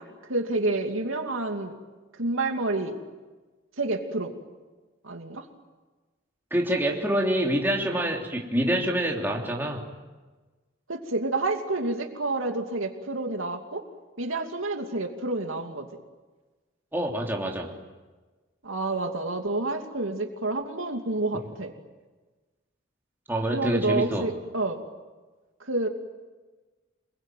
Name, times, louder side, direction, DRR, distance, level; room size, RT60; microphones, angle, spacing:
voice 1, 0.0-1.7 2.2-3.0 3.8-4.3 5.0-5.4 10.9-13.8 14.2-15.9 18.6-21.7 23.5-24.8 25.6-25.9, right 2 dB, 80° right, 4 dB, 2.7 m, -29 dB
voice 2, 6.5-9.9 16.9-17.7 23.3-24.3, right 1 dB, 10° right, -1 dB, 3.3 m, -26 dB
27.5 x 22.0 x 9.3 m, 1.3 s
head